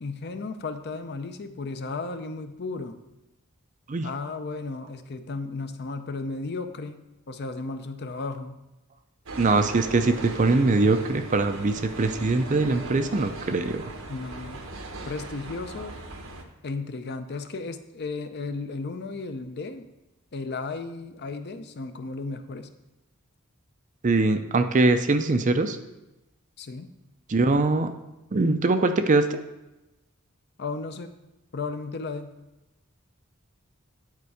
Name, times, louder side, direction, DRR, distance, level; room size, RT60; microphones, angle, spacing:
voice 1, 0.0-3.0 4.0-8.6 14.1-14.6 15.0-16.0 16.6-19.9 20.3-22.7 26.6-26.9 30.6-31.1 31.5-32.3, left 3 dB, 50° left, 9 dB, 0.6 m, -34 dB
sound 1, 9.3-16.4, right 2 dB, 70° right, 1.0 m, -39 dB
voice 2, 9.4-13.8 24.0-25.8 27.3-27.9 28.3-29.4, right 3 dB, 35° right, 8 dB, 0.5 m, -22 dB
9.5 x 4.3 x 4.9 m, 0.97 s
head